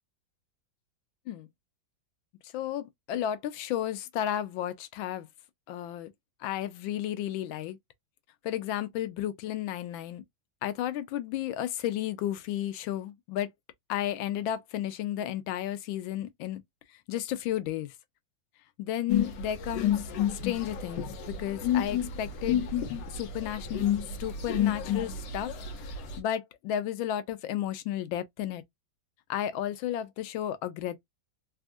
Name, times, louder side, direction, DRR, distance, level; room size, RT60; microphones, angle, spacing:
voice 1, 2.5-5.3 5.7-6.1 6.4-7.8 8.4-10.2 10.6-13.5 13.9-16.6 17.1-17.9 18.8-20.0 20.3-22.6 23.1-25.5 26.2-28.6 29.3-31.0, left 11 dB, 85° left, 1.4 m, -33 dB
sound 1, 19.1-26.2, left 9 dB, 70° left, 1.4 m, -30 dB
3.4 x 2.4 x 2.4 m
omnidirectional pair, 2.1 m